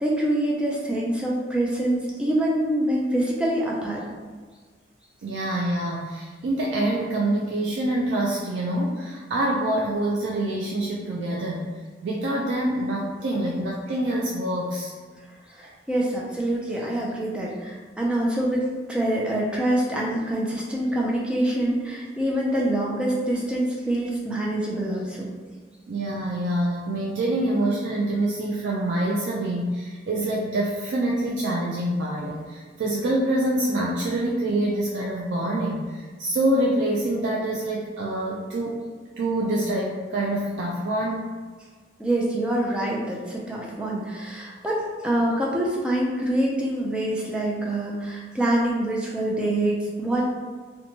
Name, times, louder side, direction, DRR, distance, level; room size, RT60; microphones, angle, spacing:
voice 1, 0.0-4.0 15.5-25.3 42.0-50.2, right 1 dB, 5° right, -4 dB, 0.3 m, -25 dB
voice 2, 5.2-11.7 12.0-14.9 25.9-38.8 39.2-41.3, right 1 dB, 80° right, -3 dB, 0.3 m, -26 dB
2.8 x 2.2 x 2.7 m, 1.5 s
head